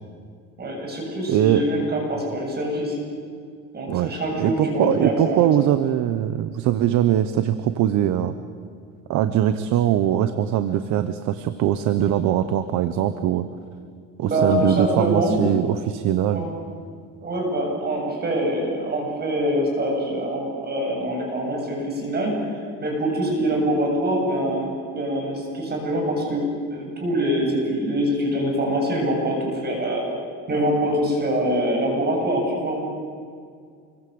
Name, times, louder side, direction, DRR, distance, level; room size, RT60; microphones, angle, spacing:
voice 1, 0.6-3.0 3.7-5.4 14.2-15.4 16.3-16.5 17.2-22.3 22.8-26.5 26.7-30.0 30.5-32.9, right 1 dB, 30° right, 1 dB, 7.5 m, -24 dB
voice 2, 1.3-1.7 3.9-4.1 4.4-8.3 9.1-13.5 14.2-16.4, right 11 dB, 60° right, 10 dB, 1.3 m, -21 dB
28.5 x 23.0 x 8.0 m, 2.2 s
cardioid pair, 145°, 32 cm